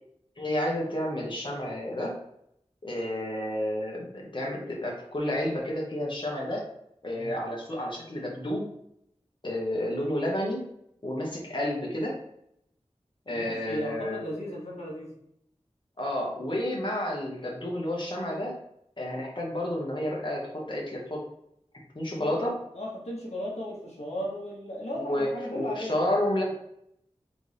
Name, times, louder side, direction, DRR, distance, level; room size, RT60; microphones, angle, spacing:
voice 1, 0.4-2.1 2.8-6.6 7.0-8.6 9.4-10.6 11.0-12.1 13.3-14.2 16.0-18.5 19.0-21.2 21.9-22.5 24.9-26.5, left 1 dB, 45° left, -3 dB, 1.2 m, -30 dB
voice 2, 13.3-15.1 22.2-22.5 22.7-26.0, equal, 75° left, -4 dB, 1.2 m, -36 dB
4.1 x 3.5 x 3.3 m, 0.75 s
wide cardioid pair, 60°, 11 cm